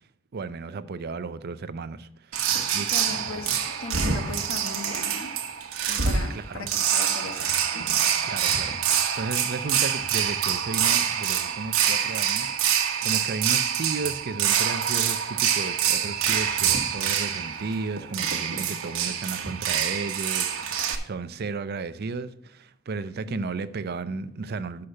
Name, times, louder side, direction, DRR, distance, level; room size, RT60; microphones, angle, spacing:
voice 1, 0.3-2.3 2.7-2.9 6.3-6.7 8.2-8.7 9.1-12.5 13.0-24.9, right 4 dB, 50° right, 0.5 m, -34 dB
sound 1, 2.3-21.0, right 8 dB, 80° right, 1.0 m, -26 dB
voice 2, 2.9-5.3 5.9-7.8 23.3-23.4, left 3 dB, 75° left, 1.3 m, -38 dB
6.5 x 5.7 x 6.4 m
head